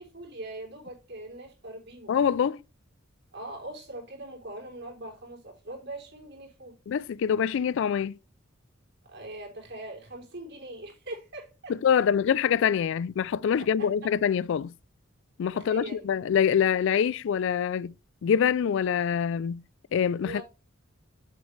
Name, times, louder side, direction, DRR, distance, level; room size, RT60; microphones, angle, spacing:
voice 1, 0.0-2.2 3.3-6.7 9.1-11.7 13.6-13.9 15.5-16.1 20.2-20.4, right 1 dB, 55° right, 3.5 m, -41 dB
voice 2, 2.1-2.6 6.9-8.2 11.7-14.7 15.4-17.9 18.2-19.6 19.9-20.4, left 8 dB, 65° left, 0.3 m, -25 dB
7.2 x 6.5 x 3.2 m
head